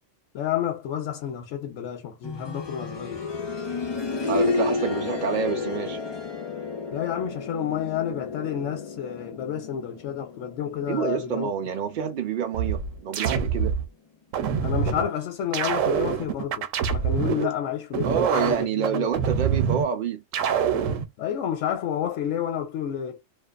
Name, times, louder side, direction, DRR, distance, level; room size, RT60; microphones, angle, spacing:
voice 1, 0.3-3.2 6.9-11.5 14.6-19.1 21.2-23.2, left 10 dB, 75° left, 0.9 m, -30 dB
sound 1, 2.2-13.0 14.4-14.5, left 4 dB, 35° left, 0.4 m, -32 dB
voice 2, 4.3-6.0 10.9-13.7 17.4-17.5 18.0-20.2, right 7 dB, 65° right, 0.5 m, -27 dB
sound 2, 12.5-13.8 14.3-15.0 15.5-17.5 17.9-19.8 20.3-21.0, right 7 dB, 85° right, 1.0 m, -25 dB
2.4 x 2.4 x 2.2 m
omnidirectional pair, 1.3 m